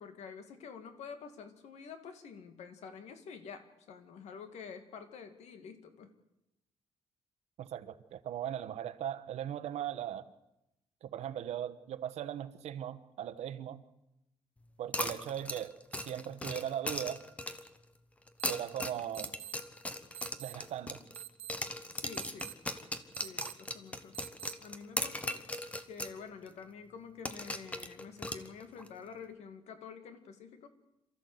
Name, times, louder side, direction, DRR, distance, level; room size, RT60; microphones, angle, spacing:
voice 1, 0.0-6.1 21.9-22.6 23.2-24.1 24.6-25.5 25.9-30.7, left 6 dB, 90° left, 2.4 m, -48 dB
voice 2, 7.6-10.3 11.0-13.8 14.8-17.2 18.5-19.3 20.4-21.0, right 10 dB, 80° right, 1.2 m, -39 dB
sound 1, 14.9-17.8 18.3-21.2 21.5-26.2 26.5-26.6 27.2-28.9, left 1 dB, 10° left, 1.0 m, -38 dB
sound 2, 18.4-18.5 19.1-19.5 20.1-20.5 21.1-21.5 22.1-22.5 23.1-23.5 24.1-24.5, right 13 dB, 65° right, 1.4 m, -45 dB
27.5 x 14.0 x 8.1 m
cardioid pair, 170°, 11 cm